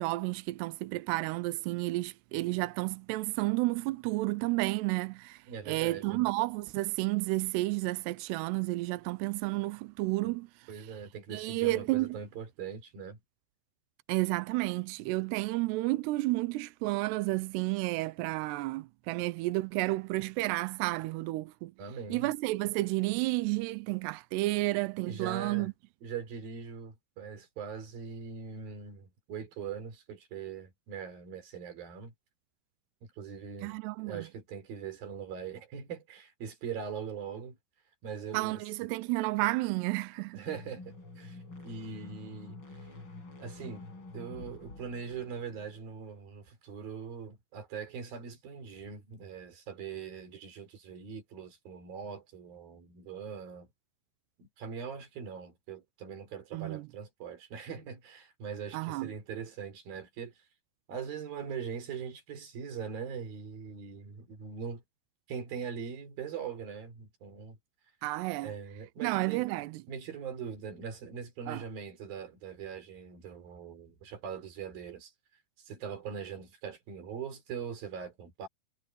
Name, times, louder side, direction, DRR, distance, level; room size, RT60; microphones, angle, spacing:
voice 1, 0.0-10.5 11.3-12.2 14.1-21.7 22.1-25.7 33.6-34.2 38.3-40.4 56.5-56.9 58.7-59.1 68.0-68.5 69.0-69.8 71.5-71.6, right 21 dB, 85° right, 2.4 m, -31 dB
voice 2, 5.5-6.3 10.2-10.3 10.7-13.2 21.8-22.3 25.0-25.7 26.0-32.1 33.2-33.8 34.1-37.6 38.0-38.6 40.4-41.4 41.6-42.6 43.4-43.9 44.1-53.7 54.4-60.3 60.9-64.8 65.3-67.6 68.4-69.5 69.9-75.1 75.6-78.5, right 6 dB, 50° right, 5.2 m, -41 dB
sound 1, 40.4-46.0, left 2 dB, 25° left, 5.7 m, -48 dB
omnidirectional pair, 5.5 m